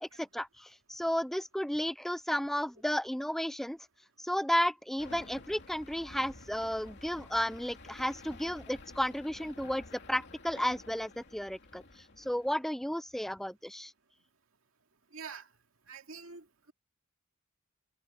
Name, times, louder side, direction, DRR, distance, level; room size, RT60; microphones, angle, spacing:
voice 1, 0.0-3.8 4.2-9.8 10.1-11.8 12.2-13.9, equal, ahead, 0.4 m, -33 dB
sound 1, 5.0-12.5, left 2 dB, 55° left, 2.8 m, -51 dB
voice 2, 15.1-15.5 15.9-16.7, right 5 dB, 80° right, 2.3 m, -46 dB
head